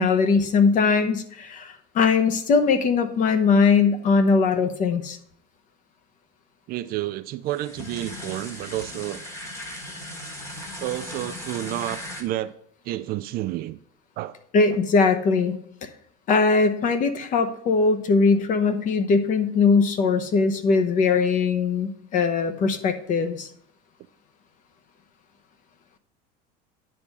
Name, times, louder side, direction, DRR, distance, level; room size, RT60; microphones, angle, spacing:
voice 1, 0.0-5.2 14.5-15.6 15.8-15.9 16.3-23.5, left 4 dB, 40° left, 0.8 m, -20 dB
voice 2, 6.7-9.2 10.8-12.6 12.8-13.8 14.2-14.4 14.7-14.8, right 15 dB, 45° right, 0.4 m, -30 dB
sound 1, 7.5-12.2, left 1 dB, 15° left, 1.4 m, -37 dB
9.9 x 3.6 x 5.3 m
cardioid pair, 135°, 21 cm